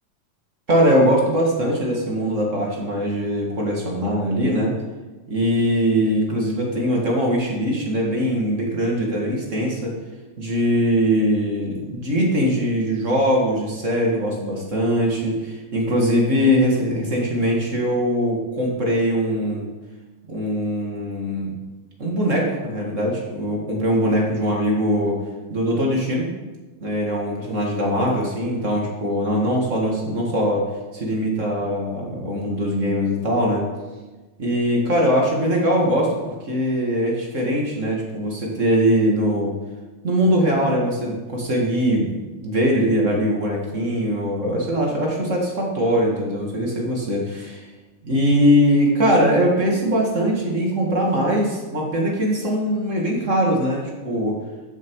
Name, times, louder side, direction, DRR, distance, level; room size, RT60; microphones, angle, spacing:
voice 1, 0.7-4.7 5.3-9.9 10.4-19.7 20.3-21.5 22.0-25.2 25.5-26.3 26.8-30.7 30.9-33.7 34.4-39.5 40.0-47.6 48.0-54.4, equal, 30° right, -1 dB, 1.7 m, -21 dB
13.5 x 7.3 x 4.7 m, 1.2 s
omnidirectional pair, 3.6 m